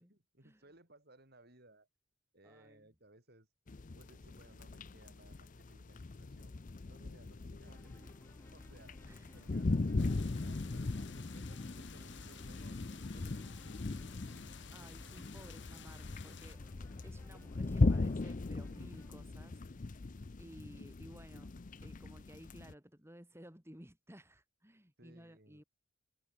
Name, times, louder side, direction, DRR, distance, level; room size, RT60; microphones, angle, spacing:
voice 1, 0.0-1.9 2.3-3.5 3.9-6.6 6.9-8.1 8.5-9.0 9.3-14.5 25.0-25.6, right 2 dB, 50° right, 5.5 m, -62 dB
voice 2, 2.4-2.9 9.0-9.4 14.7-16.6 17.0-20.1 20.4-21.5 21.8-25.6, equal, 10° right, 3.6 m, -56 dB
sound 1, 3.7-22.7, left 3 dB, 40° left, 0.6 m, -38 dB
sound 2, 7.7-19.1, left 1 dB, 10° left, 2.0 m, -61 dB
sound 3, 10.0-16.6, left 7 dB, 60° left, 6.2 m, -54 dB
head